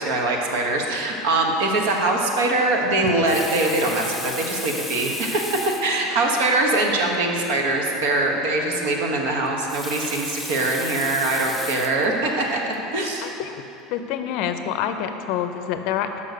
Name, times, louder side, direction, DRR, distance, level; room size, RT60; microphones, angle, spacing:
voice 1, 0.0-12.6 12.9-13.3, right 2 dB, 70° right, 1 dB, 1.1 m, -22 dB
Water tap faucet, 3.1-6.0 6.8-6.9 7.1-7.2 9.5-12.1 12.7-12.9, left 2 dB, 5° left, 0.5 m, -34 dB
voice 2, 13.2-13.6 13.9-16.2, left 9 dB, 55° left, 7 dB, 0.5 m, -27 dB
6.6 x 5.5 x 6.6 m, 3.0 s
cardioid pair, 165°, 0 cm